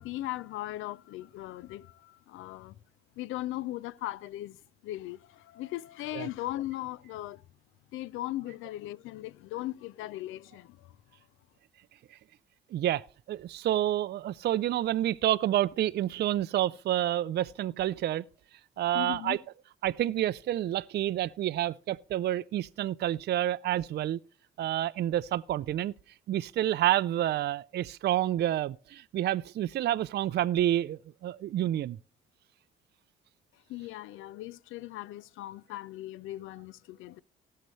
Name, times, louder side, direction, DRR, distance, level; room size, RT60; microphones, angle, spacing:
voice 1, 0.0-2.8 3.2-4.6 4.8-7.4 7.9-10.9 18.9-19.4 33.7-37.2, left 15 dB, 90° left, 0.5 m, -38 dB
voice 2, 12.7-18.3 18.8-19.4 19.8-24.2 24.6-25.9 26.3-32.0, right 12 dB, 55° right, 0.4 m, -29 dB
18.0 x 6.6 x 3.1 m
cardioid pair, 90°, 20 cm